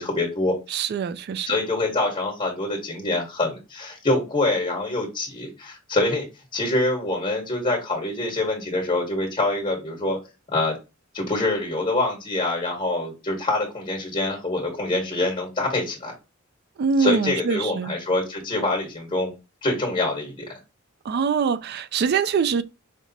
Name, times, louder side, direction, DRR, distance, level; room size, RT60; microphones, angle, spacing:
voice 1, 0.0-0.5 1.4-6.3 6.5-10.2 10.5-10.8 11.1-16.1 17.0-19.3 19.6-20.5, left 2 dB, 30° left, 1.2 m, -25 dB
voice 2, 0.7-1.5 16.8-17.9 21.0-22.6, right 6 dB, 50° right, 0.3 m, -23 dB
5.0 x 2.0 x 3.9 m
head